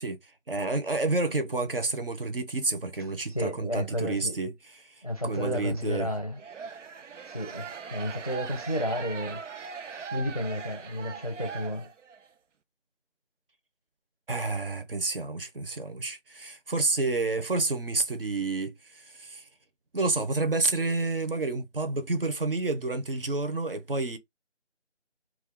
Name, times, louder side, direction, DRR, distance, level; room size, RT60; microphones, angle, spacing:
voice 1, 0.0-4.5 4.8-6.1 14.3-19.5 19.9-24.2, right 3 dB, 50° right, 0.7 m, -29 dB
voice 2, 3.3-4.4 5.0-6.4 7.3-9.4 10.1-11.9, equal, 35° left, 0.5 m, -32 dB
sound 1, 6.4-12.3, right 6 dB, 90° right, 0.6 m, -40 dB
2.3 x 2.2 x 3.6 m
figure-of-eight pair, 170°, 35 cm